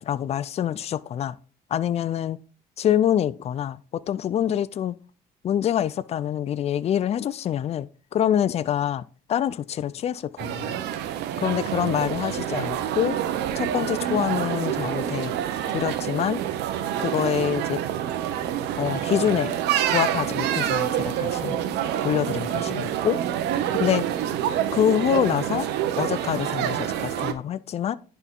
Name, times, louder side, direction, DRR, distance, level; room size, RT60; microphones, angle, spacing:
voice 1, 0.0-1.4 1.7-2.4 2.8-5.0 5.4-9.0 9.3-10.8 11.4-13.2 13.6-15.3 15.7-16.4 17.0-17.8 18.8-19.5 19.9-21.6 22.0-23.2 23.7-24.0 24.7-25.7 26.0-28.0, left 10 dB, 40° left, 0.4 m, -25 dB
sound 1, 10.4-27.3, right 10 dB, 85° right, 0.8 m, -27 dB
10.5 x 3.9 x 3.7 m
cardioid pair, 110°, 17 cm